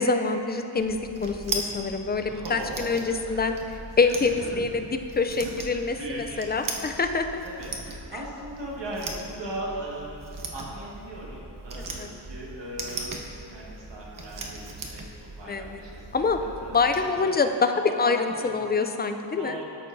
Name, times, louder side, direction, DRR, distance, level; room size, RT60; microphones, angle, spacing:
voice 1, 0.0-4.8 5.1-7.4 12.0-12.1 15.5-15.8 16.1-16.4 16.7-17.7 18.0-19.6, left 4 dB, 25° left, 7 dB, 0.3 m, -26 dB
sound 1, 0.8-17.0, right 3 dB, 50° right, 0.8 m, -39 dB
voice 2, 2.3-3.6 4.0-4.5 5.4-6.7 7.4-13.2 13.5-17.3 17.7-18.6 19.3-19.6, right 1 dB, 75° right, -4 dB, 1.7 m, -39 dB
13.5 x 6.6 x 2.6 m, 2.9 s
wide cardioid pair, 130°, 43 cm